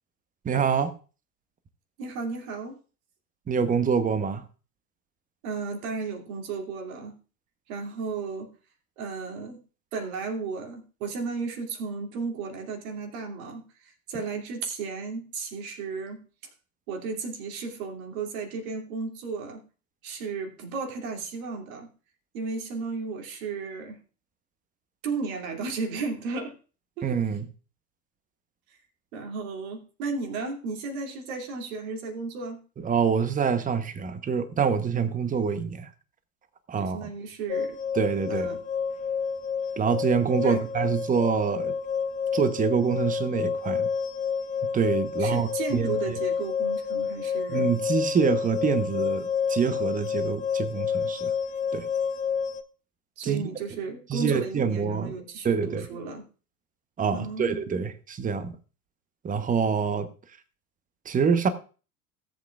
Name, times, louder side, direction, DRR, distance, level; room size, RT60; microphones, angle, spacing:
voice 1, 0.4-0.9 3.5-4.4 27.0-27.5 32.8-35.9 36.7-37.1 37.9-38.5 39.8-41.7 42.3-43.9 44.6-46.2 47.5-51.3 51.7-51.9 53.2-53.4 54.1-55.1 55.4-55.9 57.0-58.6 59.2-60.1 61.0-61.5, right 6 dB, 15° right, 11 dB, 0.9 m, -26 dB
voice 2, 2.0-2.8 5.4-7.1 7.7-8.5 9.0-9.6 9.9-16.2 16.9-19.6 20.0-21.9 22.3-24.0 25.0-26.5 27.0-27.1 29.1-32.6 36.8-37.8 38.3-38.6 40.4-40.7 45.2-47.7 53.2-56.2 57.1-57.6, right 4 dB, 60° right, 2 dB, 2.7 m, -34 dB
sound 1, 37.5-52.6, left 6 dB, 15° left, 0.4 m, -29 dB
17.5 x 7.8 x 2.4 m, 0.36 s
hypercardioid pair, 90°, 47 cm